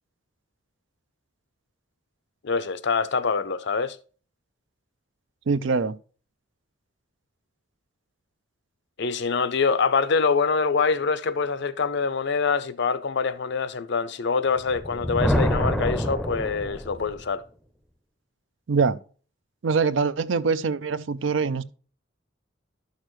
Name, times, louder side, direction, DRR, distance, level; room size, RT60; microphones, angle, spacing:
voice 1, 2.4-4.0 9.0-17.4, left 5 dB, 60° left, 0.6 m, -25 dB
voice 2, 5.5-5.9 18.7-19.0 19.6-21.6, right 5 dB, 65° right, 0.5 m, -23 dB
Thunder, 14.6-17.3, equal, ahead, 0.6 m, -26 dB
11.5 x 6.5 x 3.1 m
head